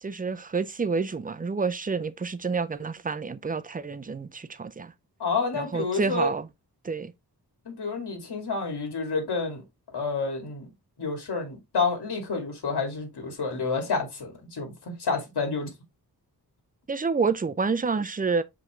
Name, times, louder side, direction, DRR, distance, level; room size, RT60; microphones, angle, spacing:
voice 1, 0.0-4.9 5.5-6.5 6.8-7.1 16.9-18.4, right 4 dB, 20° right, 0.5 m, -28 dB
voice 2, 5.2-6.3 7.7-9.6 9.9-10.7 11.0-15.7, left 4 dB, 90° left, 2.5 m, -29 dB
6.0 x 5.0 x 3.1 m
wide cardioid pair, 175°, 39 cm